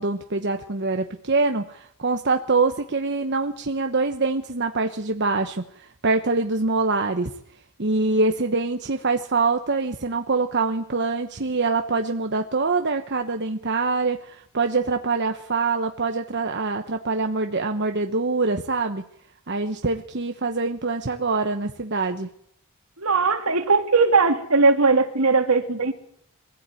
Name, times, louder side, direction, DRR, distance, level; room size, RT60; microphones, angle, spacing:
voice 1, 0.0-7.3 7.8-19.0 19.5-22.3, right 3 dB, 50° right, 5 dB, 1.2 m, -24 dB
voice 2, 23.0-25.9, right 4 dB, 75° right, 6 dB, 2.8 m, -19 dB
23.5 x 15.5 x 9.2 m, 0.71 s
head